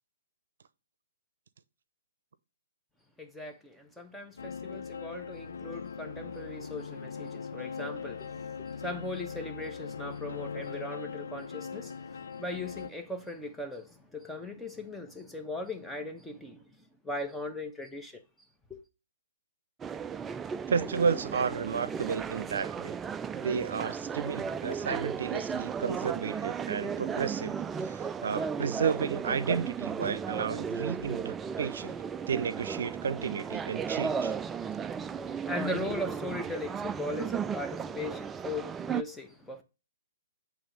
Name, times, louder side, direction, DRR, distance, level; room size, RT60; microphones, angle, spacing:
voice 1, 3.2-16.8 17.0-18.2 18.7-18.8 34.5-39.6, left 2 dB, 5° left, 1.0 m, -39 dB
sound 1, 4.4-12.9, left 6 dB, 75° left, 0.4 m, -40 dB
sound 2, 19.8-39.0, right 6 dB, 15° right, 0.3 m, -35 dB
voice 2, 20.7-23.0 23.3-32.0 32.3-34.4, right 6 dB, 65° right, 0.6 m, -32 dB
8.5 x 3.4 x 5.1 m
hypercardioid pair, 125°, 0 cm